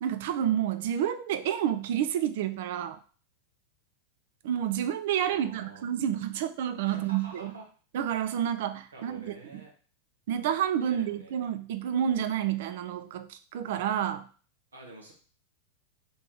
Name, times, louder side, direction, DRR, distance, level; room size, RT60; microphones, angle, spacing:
voice 1, 0.0-3.0 4.4-7.5 7.9-9.3 10.3-14.2, right 10 dB, 55° right, 10 dB, 0.4 m, -29 dB
voice 2, 5.3-5.9 6.8-7.6 8.9-9.7 10.8-11.4 14.7-15.1, right 2 dB, 70° right, -1 dB, 1.0 m, -48 dB
3.5 x 2.8 x 4.3 m, 0.41 s
figure-of-eight pair, 90°, 0 cm